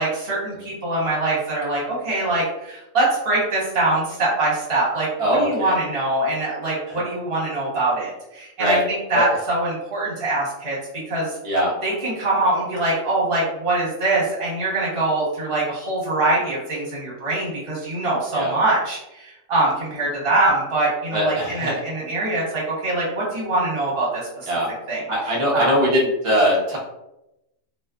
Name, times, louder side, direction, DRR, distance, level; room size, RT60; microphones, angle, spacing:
voice 1, 0.0-11.4 11.8-24.5 24.9-25.0 25.5-25.7, right 2 dB, 45° right, -6 dB, 1.1 m, -23 dB
voice 2, 5.2-5.7 6.9-7.0 8.6-8.8 9.1-9.2 11.4-11.7 18.3-18.5 21.1-21.7 24.5-24.7 25.1-26.8, equal, 30° right, -4 dB, 0.6 m, -21 dB
2.5 x 2.4 x 2.2 m, 0.90 s
omnidirectional pair, 1.4 m